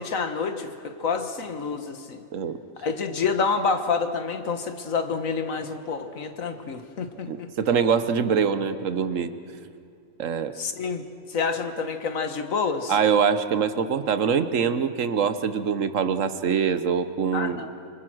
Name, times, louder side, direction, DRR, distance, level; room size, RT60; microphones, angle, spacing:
voice 1, 0.0-2.2 2.8-7.5 10.6-13.0 17.3-17.7, left 5 dB, 85° left, 8 dB, 1.9 m, -28 dB
voice 2, 7.2-9.3 10.2-10.5 12.9-17.7, right 6 dB, 75° right, 11 dB, 1.4 m, -24 dB
26.0 x 25.5 x 6.3 m, 2.4 s
omnidirectional pair, 1.4 m